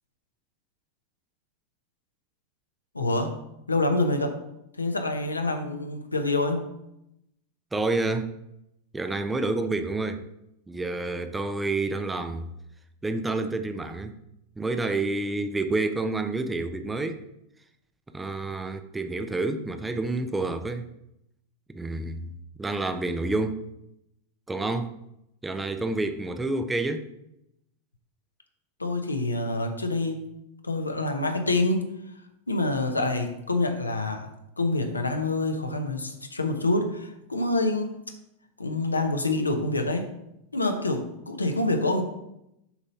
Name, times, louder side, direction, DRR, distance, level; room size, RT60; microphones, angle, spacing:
voice 1, 2.9-3.4 3.7-4.4 4.8-6.7 28.8-30.3 30.6-31.9 32.5-38.0 38.6-40.1 40.5-42.0, left 2 dB, 80° left, 5 dB, 0.8 m, -26 dB
voice 2, 7.7-8.3 8.9-10.2 10.7-12.5 13.0-14.1 14.6-17.2 18.1-20.9 21.7-22.3 22.6-23.6 24.5-24.9 25.4-27.1, right 2 dB, 10° right, 8 dB, 0.5 m, -28 dB
7.1 x 4.0 x 5.4 m, 0.83 s
figure-of-eight pair, 90°, 0 cm